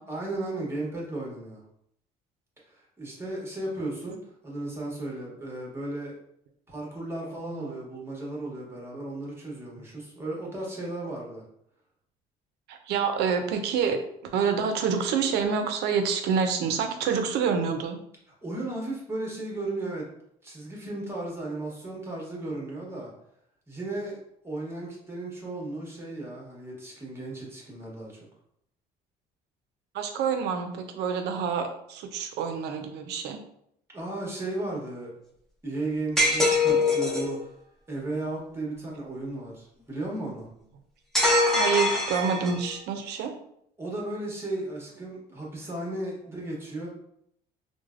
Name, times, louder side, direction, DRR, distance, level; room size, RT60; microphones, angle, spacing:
voice 1, 0.1-1.6 2.7-6.2 6.7-11.4 18.3-20.1 20.4-23.1 23.7-24.2 24.4-28.2 33.9-35.1 35.6-37.5 37.9-40.5 43.8-46.9, right 2 dB, 15° right, -3 dB, 1.0 m, -35 dB
voice 2, 12.7-18.0 29.9-33.4 41.5-43.3, right 6 dB, 80° right, 6 dB, 0.5 m, -27 dB
sound 1, 36.2-37.3 41.1-42.7, left 2 dB, 5° left, 0.5 m, -23 dB
3.2 x 2.1 x 2.4 m, 0.73 s
cardioid pair, 110°, 17 cm